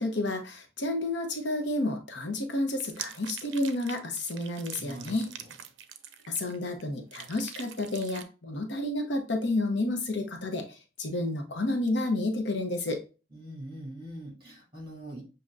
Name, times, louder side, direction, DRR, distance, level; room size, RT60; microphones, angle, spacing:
voice 1, 0.0-5.3 6.3-13.0, left 2 dB, 70° left, 5 dB, 0.8 m, -30 dB
sound 1, 2.7-6.8 7.1-8.2, right 9 dB, 75° right, 0.5 m, -44 dB
voice 2, 4.8-5.2 13.3-15.2, right 1 dB, 25° right, -2 dB, 2.4 m, -42 dB
6.4 x 2.8 x 2.4 m, 0.32 s
head